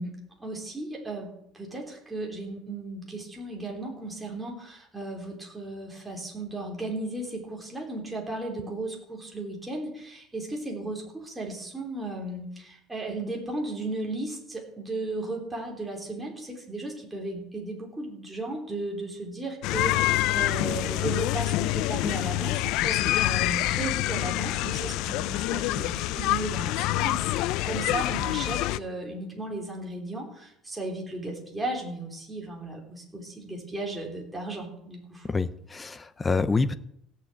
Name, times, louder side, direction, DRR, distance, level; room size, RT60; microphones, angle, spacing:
voice 1, 0.0-35.3, right 2 dB, 10° right, -1 dB, 3.5 m, -35 dB
sound 1, 19.6-28.8, left 17 dB, 65° left, 0.4 m, -26 dB
voice 2, 35.3-36.7, left 4 dB, 15° left, 14 dB, 0.6 m, -26 dB
16.5 x 7.0 x 8.5 m, 0.76 s
cardioid pair, 155°, 0 cm